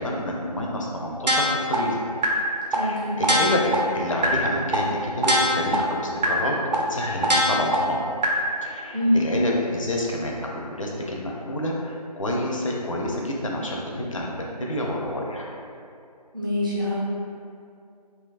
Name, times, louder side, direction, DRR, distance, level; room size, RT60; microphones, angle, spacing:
voice 1, 0.0-2.0 2.7-8.1 8.6-15.5, left 1 dB, 50° left, -1 dB, 0.4 m, -28 dB
sound 1, 1.3-1.7 2.2-2.3 2.7-2.8 3.2-3.7 4.2-4.3 4.7-4.8 5.2-5.7 6.2-6.3 6.7-6.8 7.2-7.7 8.2-8.3, right 1 dB, 80° right, 0.5 m, -20 dB
voice 2, 2.7-3.1 8.9-9.3 16.3-16.9, left 1 dB, 30° right, -8 dB, 0.5 m, -24 dB
2.8 x 2.3 x 2.4 m, 2.5 s
figure-of-eight pair, 165°, 21 cm